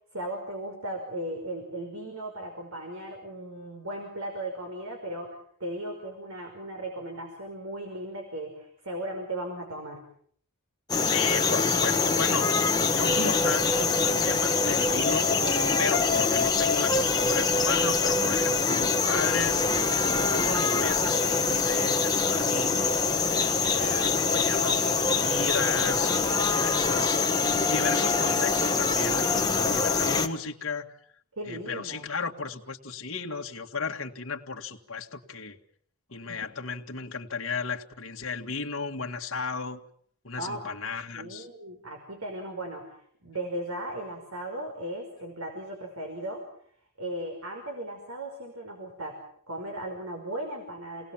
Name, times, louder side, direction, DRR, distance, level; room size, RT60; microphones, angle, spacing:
voice 1, 0.1-10.0 31.4-32.1 36.3-36.4 40.4-40.7 41.1-46.5 47.0-49.2 49.5-51.1, right 1 dB, 75° right, 3 dB, 5.4 m, -37 dB
sound 1, 10.9-30.3, left 4 dB, 20° left, 1.7 m, -24 dB
voice 2, 11.0-15.3 15.8-19.7 20.0-23.0 23.5-27.2 27.7-30.9 31.4-35.6 36.1-39.8 40.2-41.5, left 5 dB, 60° left, 1 dB, 1.9 m, -34 dB
29.0 x 19.5 x 7.4 m, 0.63 s
head